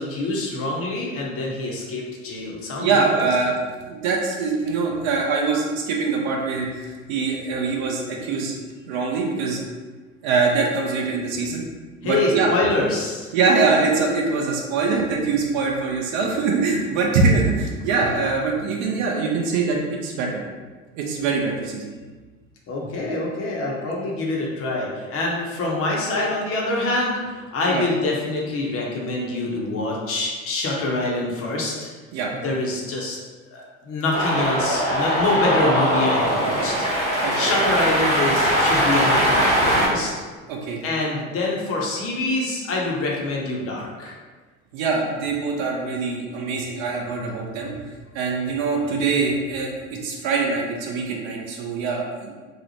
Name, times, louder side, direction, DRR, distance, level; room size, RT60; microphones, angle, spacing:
voice 1, 0.0-3.1 12.0-13.3 22.7-31.9 32.4-33.2 33.5-36.8 37.3-40.1 40.8-44.2, left 2 dB, 35° left, -2 dB, 0.6 m, -25 dB
voice 2, 2.8-3.6 3.9-8.5 8.9-9.6 10.2-11.6 12.0-12.5 13.3-20.4 20.9-21.8 27.7-27.8 32.1-32.3 36.4-36.7 37.2-37.5 40.5-40.8 44.7-47.7 48.1-52.3, right 4 dB, 45° right, 0 dB, 0.5 m, -23 dB
Cheering, 34.1-39.9, equal, 15° right, 1.0 m, -21 dB
2.8 x 2.0 x 2.8 m, 1.4 s
figure-of-eight pair, 70°, 42 cm